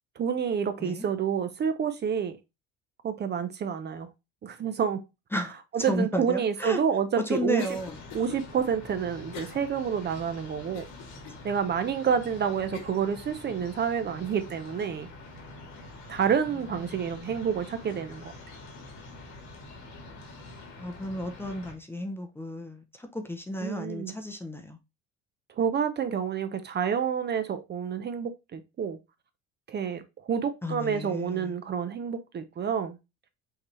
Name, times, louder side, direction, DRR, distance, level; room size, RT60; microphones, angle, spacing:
voice 1, 0.2-2.4 3.0-4.1 4.4-5.0 5.7-7.8 8.1-10.9 11.4-15.1 16.1-18.3 23.6-24.1 25.6-29.0 29.7-33.0, right 7 dB, 35° right, 0.6 m, -29 dB
voice 2, 5.9-6.8 7.3-7.9 16.9-17.1 20.8-24.8 30.6-31.6, equal, 10° left, 0.6 m, -33 dB
Cough, 7.6-8.4 9.3-9.7 10.1-10.2 10.7-11.4 12.0-12.1 12.7-13.1, left 7 dB, 65° left, 1.2 m, -44 dB
sound 1, 7.7-21.7, left 2 dB, 85° left, 2.1 m, -46 dB
5.7 x 2.8 x 3.1 m
cardioid pair, 105°, 29 cm